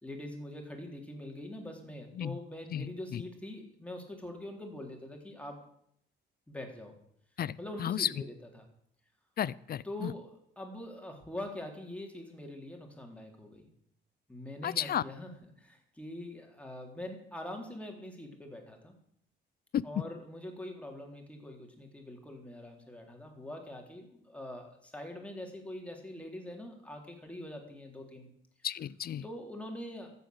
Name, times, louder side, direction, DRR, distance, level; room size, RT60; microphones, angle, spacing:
voice 1, 0.0-5.7 6.5-6.9 7.6-8.7 9.8-13.7 14.3-15.3 15.6-19.0 19.8-28.3 29.2-30.1, left 1 dB, 5° left, 2 dB, 3.8 m, -44 dB
voice 2, 2.7-3.2 7.4-8.1 9.4-10.1 14.6-15.0 19.7-19.8 28.6-29.2, left 10 dB, 50° left, 21 dB, 0.6 m, -33 dB
14.0 x 8.4 x 8.0 m, 0.69 s
cardioid pair, 90°, 20 cm